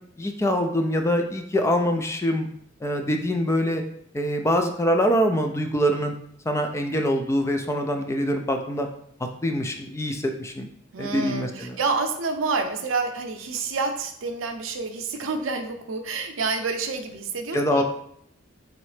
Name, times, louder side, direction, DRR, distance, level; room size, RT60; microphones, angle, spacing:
voice 1, 0.2-2.5 2.8-3.8 4.1-6.2 6.5-8.9 9.4-10.7 11.0-11.8 17.5-17.8, equal, 15° left, 4 dB, 0.3 m, -24 dB
voice 2, 10.9-17.8, right 4 dB, 75° right, 5 dB, 0.6 m, -28 dB
3.8 x 3.2 x 3.2 m, 0.70 s
head